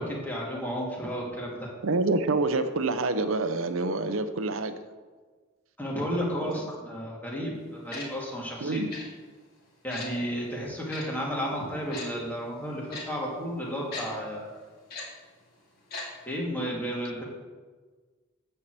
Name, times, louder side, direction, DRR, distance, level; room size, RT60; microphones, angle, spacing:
voice 1, 0.0-1.7 5.8-8.9 9.8-14.6 16.3-17.2, equal, 10° left, -4 dB, 2.1 m, -32 dB
voice 2, 1.8-4.8 6.4-6.5 8.6-8.9, right 3 dB, 85° right, 10 dB, 0.7 m, -27 dB
Tick-tock, 7.9-8.1 8.9-9.0 9.9-10.1 10.9-11.0 11.9-12.1 12.9-13.0 13.9-14.0 14.9-15.0 15.9-16.0 16.3-16.4, left 3 dB, 50° left, 2.4 m, -37 dB
8.8 x 4.7 x 7.6 m, 1.4 s
head